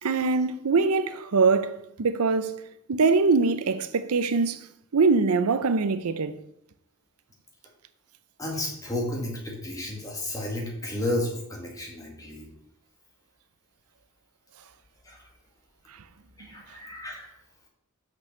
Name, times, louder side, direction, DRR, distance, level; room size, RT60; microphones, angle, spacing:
voice 1, 0.0-2.5 2.9-4.7 4.9-6.4, right 4 dB, 90° right, 0.6 m, -23 dB
voice 2, 8.4-12.5 15.0-15.3 16.4-17.3, left 1 dB, 15° left, 1.9 m, -32 dB
6.1 x 5.8 x 6.7 m
head